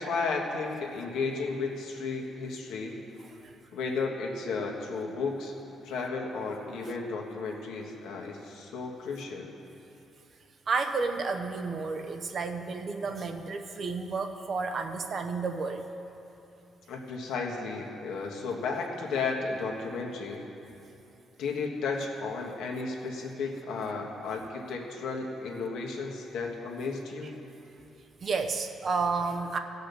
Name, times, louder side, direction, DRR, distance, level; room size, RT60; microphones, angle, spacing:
voice 1, 0.0-3.0 3.7-5.5 5.8-9.5 16.9-20.4 21.4-27.4, left 4 dB, 85° left, 0 dB, 1.4 m, -33 dB
voice 2, 10.7-15.8 28.2-29.6, right 4 dB, 50° right, 6 dB, 0.8 m, -31 dB
15.5 x 5.5 x 6.8 m, 2.9 s
cardioid pair, 90°, 0 cm